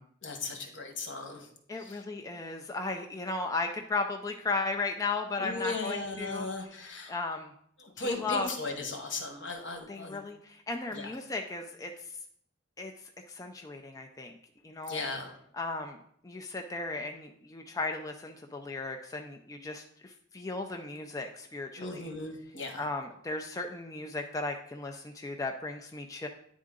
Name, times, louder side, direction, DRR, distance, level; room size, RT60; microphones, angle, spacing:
voice 1, 0.2-1.5 1.8-2.0 5.4-7.1 7.8-10.2 10.9-11.2 14.9-15.3 21.8-22.9, left 3 dB, 70° left, 3 dB, 1.2 m, -37 dB
voice 2, 1.7-6.5 7.1-7.5 8.0-8.5 9.9-12.1 12.8-12.9 13.3-14.4 14.6-15.0 15.5-16.0 16.2-22.1 22.8-26.3, left 3 dB, 15° left, 3 dB, 0.4 m, -36 dB
9.5 x 3.7 x 3.7 m, 0.68 s
head